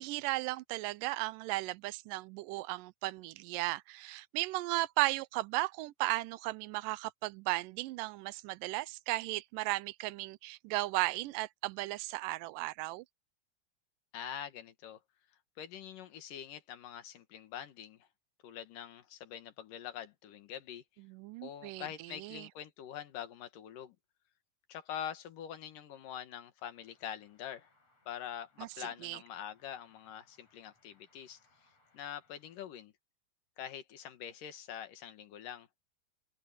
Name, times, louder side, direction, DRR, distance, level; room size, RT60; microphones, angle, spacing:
voice 1, 0.0-13.0 21.1-22.5 28.6-29.2, right 19 dB, 90° right, 2.2 m, -35 dB
voice 2, 14.1-15.0 15.6-18.1 18.4-20.8 21.4-24.0 24.7-27.7 28.1-31.4 31.9-32.9 33.6-35.7, left 9 dB, 80° left, 3.2 m, -44 dB
sound 1, 26.6-32.6, left 2 dB, 50° left, 7.1 m, -72 dB
open air
omnidirectional pair, 3.8 m